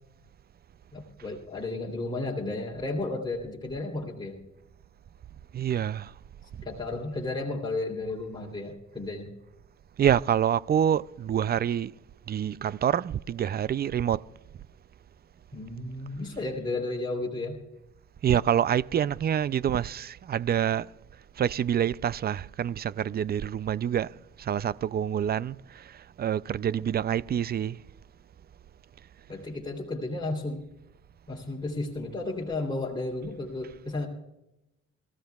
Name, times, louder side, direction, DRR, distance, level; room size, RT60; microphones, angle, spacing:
voice 1, 0.9-4.4 6.6-9.3 15.5-17.6 29.3-30.6 31.3-34.1, left 2 dB, 15° left, 3.3 m, -33 dB
voice 2, 5.5-6.1 10.0-11.9 12.3-14.2 18.2-20.9 21.4-24.1 24.4-27.8, right 9 dB, 35° right, 0.4 m, -27 dB
27.5 x 15.0 x 2.4 m
cardioid pair, 90°, 30 cm